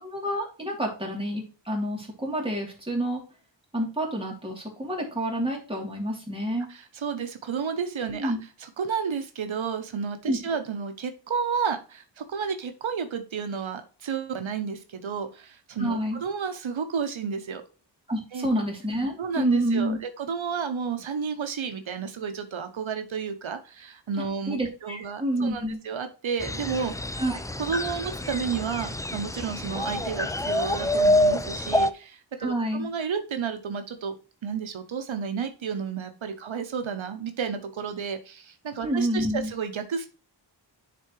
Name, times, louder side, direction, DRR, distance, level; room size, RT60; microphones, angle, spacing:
voice 1, 0.0-3.2 3.7-6.7 8.1-8.4 10.3-10.4 15.8-16.2 18.1-20.0 24.2-25.8 27.2-27.4 32.4-32.9 38.8-39.5, right 1 dB, 10° right, -2 dB, 2.7 m, -28 dB
voice 2, 6.7-8.3 8.6-17.6 18.3-18.5 19.2-27.1 27.6-34.2 34.4-40.1, right 6 dB, 90° right, 8 dB, 0.8 m, -31 dB
sound 1, 26.4-31.9, left 1 dB, 10° left, 0.3 m, -26 dB
10.0 x 3.8 x 3.0 m, 0.35 s
wide cardioid pair, 75°, 46 cm